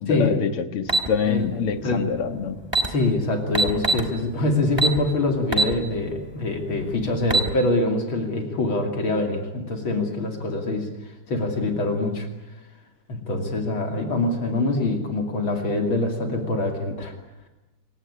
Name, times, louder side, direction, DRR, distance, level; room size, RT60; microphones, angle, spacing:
voice 1, 0.0-2.6, left 6 dB, 90° left, 8 dB, 2.6 m, -25 dB
sound 1, 0.9-1.1 2.3-2.4 2.6-2.9 3.5-4.1 4.8-5.0 5.5-5.7 6.2-6.3 7.1-7.5, right 2 dB, 10° right, 2.7 m, -21 dB
voice 2, 2.9-10.9 11.3-12.3 13.1-17.1, left 2 dB, 65° left, 4 dB, 3.5 m, -24 dB
27.0 x 17.0 x 9.8 m, 1.0 s
omnidirectional pair, 2.4 m